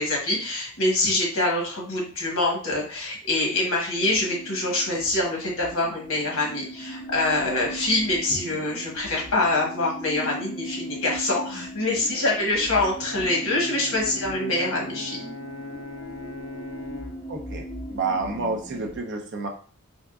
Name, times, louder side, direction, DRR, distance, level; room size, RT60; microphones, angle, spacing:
voice 1, 0.0-15.2, left 2 dB, 60° left, -1 dB, 1.1 m, -25 dB
sound 1, 4.0-19.0, right 1 dB, 10° left, 0.5 m, -39 dB
Brass instrument, 13.0-17.2, left 3 dB, 75° left, 0.4 m, -39 dB
voice 2, 17.3-17.6 17.9-19.5, right 3 dB, 55° right, 2 dB, 0.6 m, -29 dB
3.4 x 2.9 x 2.4 m, 0.41 s
head